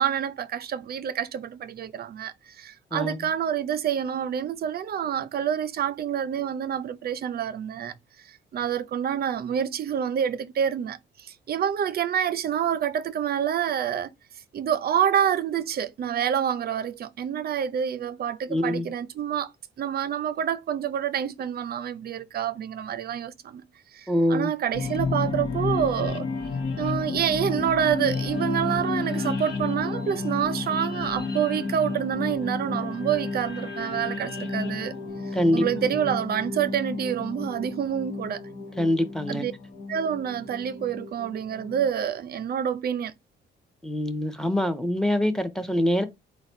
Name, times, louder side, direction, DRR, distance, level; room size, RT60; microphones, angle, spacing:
voice 1, 0.0-7.9 8.2-14.1 14.5-19.5 19.8-23.6 23.9-26.3 26.8-34.9 35.5-38.4 39.3-39.5 39.9-43.1, right 9 dB, 50° right, 0.5 m, -27 dB
voice 2, 18.5-18.9 24.1-24.5 35.3-35.7 38.8-39.4 43.8-46.0, left 1 dB, 5° left, 0.8 m, -24 dB
sound 1, 24.7-41.9, left 4 dB, 70° left, 1.1 m, -31 dB
4.0 x 2.2 x 4.3 m
cardioid pair, 90°, 20 cm